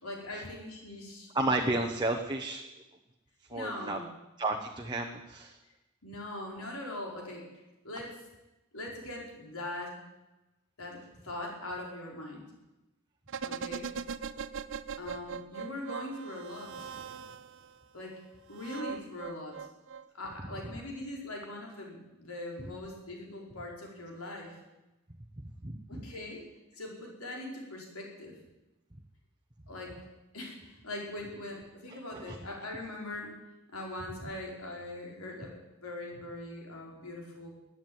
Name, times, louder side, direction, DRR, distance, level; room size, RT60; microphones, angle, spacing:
voice 1, 0.0-1.3 3.5-4.1 6.0-7.5 7.8-8.2 8.7-10.0 10.8-12.5 13.4-13.9 15.0-16.9 17.9-18.2 18.5-19.7 20.1-24.6 25.9-26.4 26.7-28.4 29.7-30.0 30.3-33.4 33.7-37.5, left 1 dB, 80° left, -1 dB, 4.8 m, -41 dB
voice 2, 1.3-2.7 3.5-4.0 4.4-5.6 25.4-26.0 31.9-32.4, right 2 dB, 20° right, 2 dB, 1.0 m, -32 dB
sound 1, 13.3-17.7 18.5-20.3 20.6-20.7, right 6 dB, 60° right, 0.6 m, -40 dB
16.0 x 9.4 x 9.4 m, 1.0 s
head